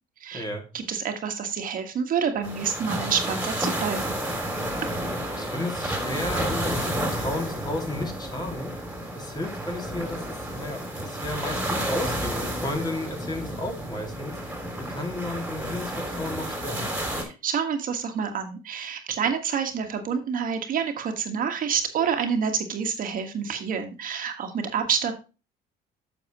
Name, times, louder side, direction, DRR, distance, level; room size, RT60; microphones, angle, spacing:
voice 1, 0.3-0.6 5.4-8.8 9.1-14.3 14.8-17.0, left 1 dB, 25° left, 3 dB, 2.4 m, -33 dB
voice 2, 0.9-4.1 17.2-25.1, right 7 dB, 55° right, 5 dB, 1.5 m, -28 dB
sound 1, 2.4-17.2, right 1 dB, 10° right, 2.6 m, -31 dB
8.9 x 6.9 x 3.0 m, 0.32 s
cardioid pair, 110°, 17 cm